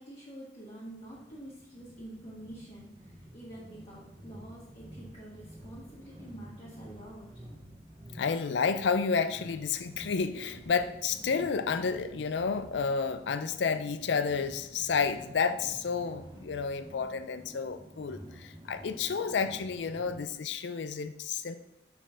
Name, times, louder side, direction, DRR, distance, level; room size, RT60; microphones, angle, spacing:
voice 1, 0.0-7.3, right 1 dB, 35° left, -9 dB, 1.5 m, -47 dB
sound 1, 0.8-20.3, right 1 dB, 25° right, 0.8 m, -50 dB
voice 2, 8.1-21.6, left 5 dB, 80° left, 11 dB, 0.4 m, -31 dB
5.1 x 3.7 x 5.6 m, 0.87 s
head